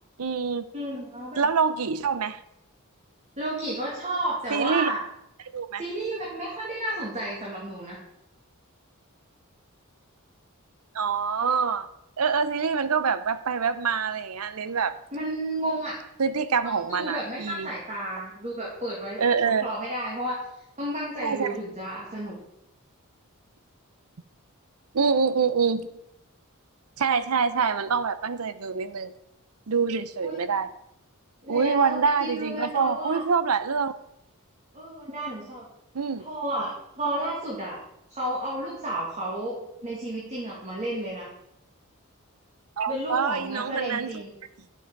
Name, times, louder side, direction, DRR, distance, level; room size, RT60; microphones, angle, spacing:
voice 1, 0.2-0.7 1.4-2.4 4.5-4.9 5.5-5.8 10.9-11.9 12.2-14.9 16.2-17.7 19.2-19.7 21.2-21.5 24.9-25.9 27.0-29.1 29.7-30.7 31.5-33.9 35.9-36.3 42.8-44.2, right 5 dB, 85° right, 14 dB, 0.7 m, -25 dB
voice 2, 0.7-1.5 3.4-5.0 5.8-8.0 15.1-15.9 16.6-20.4 20.8-22.3 30.2-30.4 31.4-33.2 34.7-35.7 36.2-37.8 38.1-41.3 42.9-44.4, right 1 dB, 30° right, -5 dB, 2.4 m, -32 dB
10.5 x 8.0 x 4.6 m, 0.83 s
head